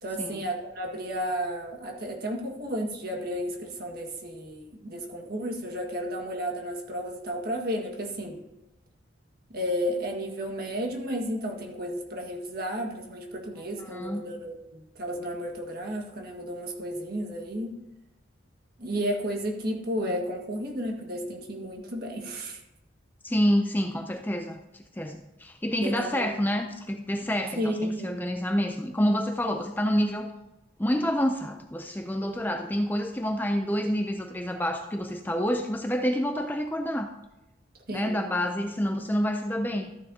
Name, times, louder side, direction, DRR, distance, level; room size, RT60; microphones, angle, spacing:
voice 1, 0.0-8.4 9.5-17.7 18.8-22.6 25.7-26.4 27.6-28.3 37.9-38.3, equal, 50° right, 1 dB, 1.7 m, -33 dB
voice 2, 13.8-14.2 23.2-24.6 25.0-30.3 30.8-37.1 37.9-39.9, equal, 10° left, 5 dB, 0.5 m, -28 dB
14.0 x 9.9 x 2.8 m, 0.94 s
head